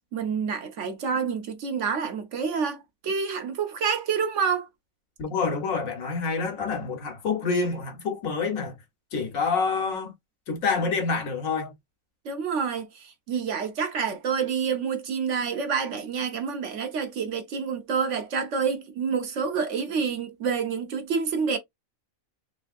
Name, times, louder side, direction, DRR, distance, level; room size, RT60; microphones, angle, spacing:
voice 1, 0.1-4.7 12.2-21.6, right 6 dB, 65° right, 1.0 m, -28 dB
voice 2, 5.2-8.7 9.1-10.1 10.5-11.7, left 4 dB, 70° left, 1.4 m, -27 dB
3.4 x 3.3 x 2.4 m
omnidirectional pair, 1.5 m